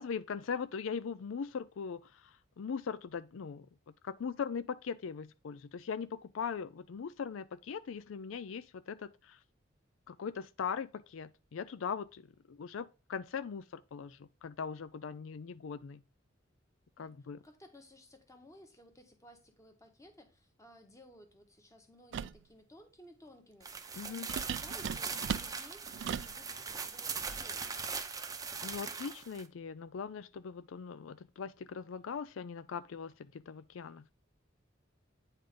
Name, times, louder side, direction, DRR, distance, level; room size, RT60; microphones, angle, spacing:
voice 1, 0.0-9.4 10.1-16.0 17.0-17.4 24.0-24.3 28.6-34.1, left 6 dB, 80° left, 0.4 m, -40 dB
voice 2, 17.4-27.8, left 1 dB, 15° left, 1.4 m, -57 dB
sound 1, 22.1-22.4 24.3-26.4, right 7 dB, 65° right, 0.3 m, -38 dB
sound 2, 23.6-29.4, right 5 dB, 20° right, 0.7 m, -40 dB
9.0 x 3.8 x 5.1 m
head